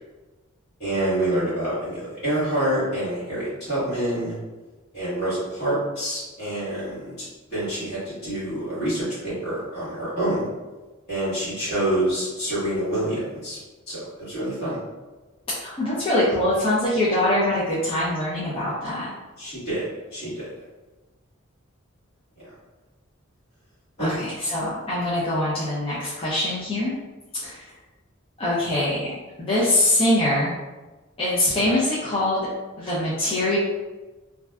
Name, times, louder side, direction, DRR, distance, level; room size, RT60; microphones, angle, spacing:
voice 1, 0.8-4.4 4.9-10.5 11.1-13.6 13.9-14.8 19.4-19.9 20.1-20.5 22.4-22.5 24.0-24.2, right 1 dB, 50° left, -10 dB, 1.4 m, -27 dB
voice 2, 15.8-19.1 24.0-26.9 27.3-27.7 28.4-30.5 31.2-32.4 32.8-33.6, left 1 dB, 25° left, -10 dB, 0.5 m, -23 dB
2.5 x 2.3 x 2.2 m, 1.2 s
head